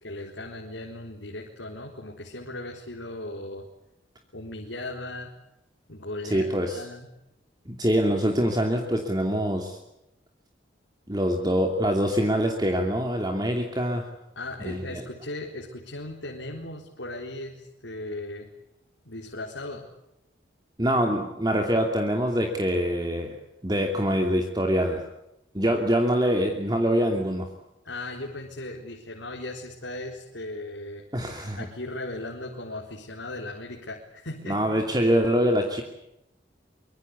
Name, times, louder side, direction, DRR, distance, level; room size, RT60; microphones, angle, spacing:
voice 1, 0.0-3.7 4.3-5.3 5.9-7.1 14.4-18.5 19.0-19.9 27.8-31.1 31.6-34.8, left 2 dB, 80° left, 0 dB, 4.0 m, -37 dB
voice 2, 6.2-6.8 7.7-9.8 11.1-14.1 14.6-15.0 20.8-23.3 23.6-25.0 25.5-27.5 31.1-31.7 34.5-35.8, equal, 20° right, 3 dB, 2.7 m, -24 dB
25.0 x 24.5 x 8.4 m, 0.86 s
head